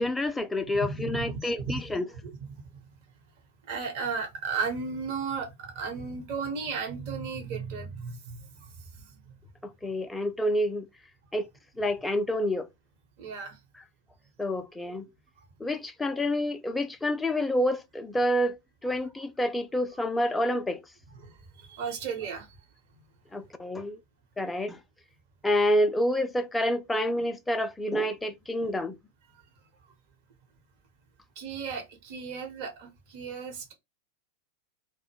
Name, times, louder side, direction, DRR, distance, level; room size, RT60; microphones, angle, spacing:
voice 1, 0.0-2.1 9.6-10.9 11.3-11.5 11.8-12.7 14.4-15.1 15.6-18.6 18.8-20.8 23.3-24.0 24.4-24.8 25.4-29.0, left 1 dB, 10° left, 0.3 m, -28 dB
voice 2, 0.8-1.8 2.3-2.6 3.7-9.2 13.2-13.6 21.2-22.5 31.4-33.7, right 5 dB, 45° right, 0.9 m, -35 dB
2.1 x 2.1 x 3.3 m
figure-of-eight pair, 90°, 0 cm